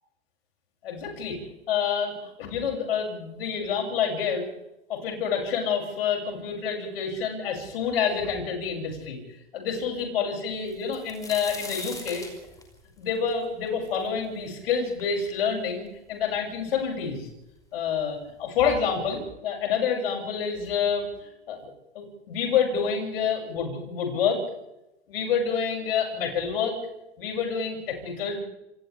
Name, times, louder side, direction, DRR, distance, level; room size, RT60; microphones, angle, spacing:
voice 1, 0.8-1.4 1.7-4.5 4.9-9.2 9.5-12.3 13.0-17.3 17.7-21.0 21.5-24.4 25.1-26.7 27.2-28.4, left 6 dB, 55° left, 1 dB, 7.0 m, -28 dB
sound 1, 10.7-14.5 15.0-15.1 15.9-16.0 16.2-16.9 17.8-17.9 18.3-18.5, left 3 dB, 10° left, 5.4 m, -40 dB
28.0 x 27.0 x 3.5 m, 0.92 s
figure-of-eight pair, 95°, 34 cm